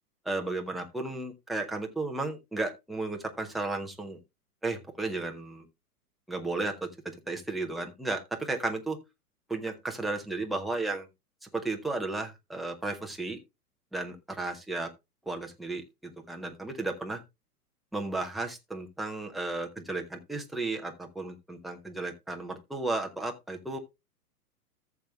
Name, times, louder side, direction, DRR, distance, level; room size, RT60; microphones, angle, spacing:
voice 1, 0.3-4.2 4.6-5.6 6.3-6.9 7.3-9.0 9.5-11.1 11.5-13.4 13.9-14.9 15.3-17.2 17.9-23.8, right 2 dB, ahead, 2 dB, 0.4 m, -34 dB
14.0 x 7.0 x 2.3 m, 0.23 s
figure-of-eight pair, 110°, 46 cm